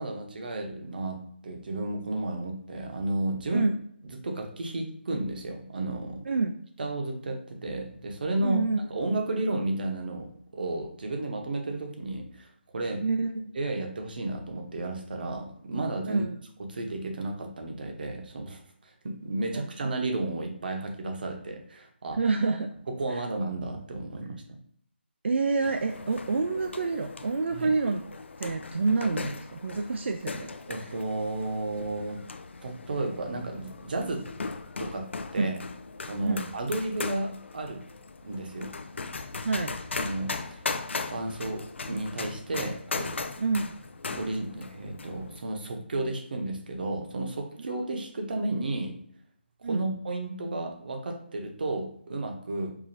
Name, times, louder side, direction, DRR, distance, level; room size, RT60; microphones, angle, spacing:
voice 1, 0.0-3.7 4.2-6.2 6.8-8.6 8.9-10.3 10.5-13.0 13.5-16.2 16.7-22.2 23.0-24.6 27.5-27.7 30.7-32.2 32.6-34.2 34.8-35.1 35.3-35.6 36.1-37.8 38.2-38.7 39.9-40.6 41.1-43.2 44.0-48.9 49.6-52.7, right 2 dB, 55° right, 3 dB, 0.8 m, -32 dB
voice 2, 6.3-6.6 8.4-8.8 13.0-13.4 16.0-16.4 19.5-19.9 22.1-22.7 25.2-28.0 28.4-30.5 35.4-35.5 36.2-36.5 39.4-39.7 43.4-43.8 49.6-49.8, right 4 dB, 80° right, 6 dB, 0.3 m, -28 dB
sound 1, 25.6-45.4, left 4 dB, 85° left, 0.4 m, -38 dB
4.7 x 2.5 x 2.7 m, 0.65 s
hypercardioid pair, 170°, 6 cm